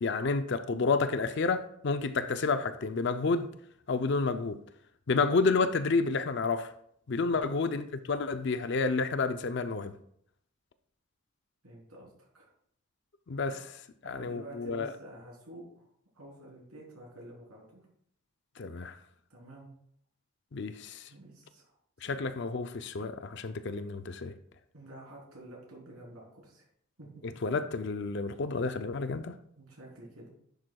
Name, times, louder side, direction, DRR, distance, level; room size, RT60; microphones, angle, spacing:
voice 1, 0.0-3.5 3.9-4.6 5.1-6.7 7.1-9.9 13.3-13.8 14.1-14.9 18.6-19.0 20.5-21.1 22.0-24.3 27.2-29.4, left 4 dB, 50° left, 0.5 m, -30 dB
voice 2, 11.6-12.5 13.5-13.6 14.0-15.9 16.1-17.9 19.3-19.7 21.1-21.7 22.1-22.2 24.7-26.7 27.0-27.2 29.6-30.3, right 1 dB, 85° right, 3.4 m, -49 dB
10.5 x 7.5 x 2.3 m
head